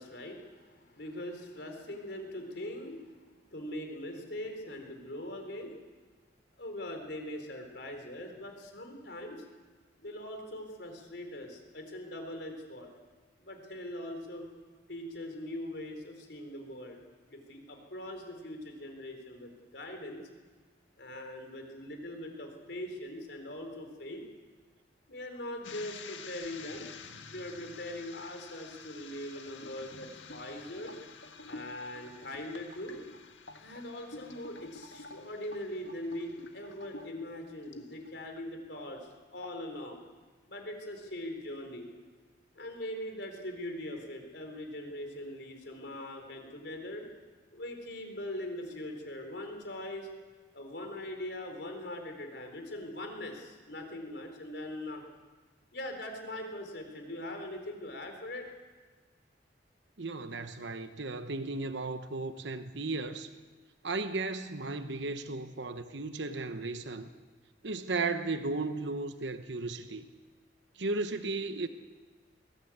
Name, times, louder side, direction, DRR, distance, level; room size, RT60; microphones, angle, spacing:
voice 1, 0.0-3.2 3.5-5.8 6.6-9.4 10.0-12.9 13.4-14.5 14.9-17.0 17.3-20.2 21.0-24.2 25.1-26.9 27.3-30.9 31.5-33.0 33.6-39.0 39.3-40.0 40.5-41.9 42.5-47.0 47.5-50.1 50.5-55.0 55.7-58.5, left 1 dB, 65° left, 4 dB, 4.2 m, -41 dB
sound 1, 25.6-38.4 38.8-39.1 39.4-39.8, left 4 dB, 90° left, 1.7 m, -49 dB
voice 2, 60.0-63.3 63.8-67.1 67.6-70.0 70.8-71.7, right 3 dB, 75° right, 9 dB, 1.0 m, -35 dB
21.5 x 17.0 x 8.7 m, 1.4 s
head